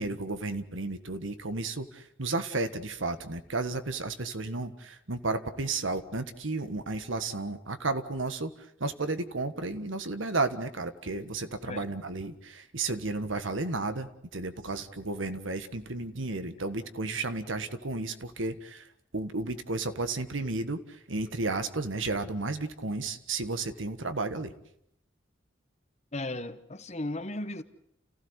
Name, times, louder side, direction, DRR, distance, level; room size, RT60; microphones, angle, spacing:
voice 1, 0.0-8.5 8.8-18.9 19.1-24.5, right 3 dB, 80° right, 1.6 m, -33 dB
voice 2, 26.1-27.6, left 1 dB, 35° left, 1.1 m, -35 dB
29.0 x 16.0 x 8.2 m
head